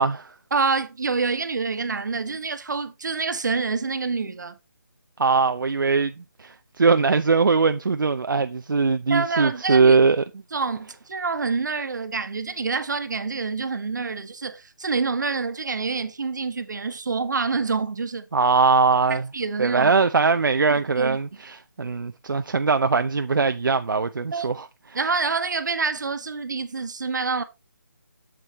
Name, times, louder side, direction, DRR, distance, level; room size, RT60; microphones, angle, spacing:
voice 1, 0.0-0.3 5.2-10.2 18.3-19.3 19.6-24.6, right 4 dB, 85° right, 0.6 m, -21 dB
voice 2, 0.5-4.6 9.1-10.0 10.5-18.3 19.3-19.9 21.0-21.2 24.3-24.5 24.9-27.4, right 4 dB, 65° right, 1.2 m, -27 dB
7.7 x 7.4 x 3.0 m
figure-of-eight pair, 165°, 11 cm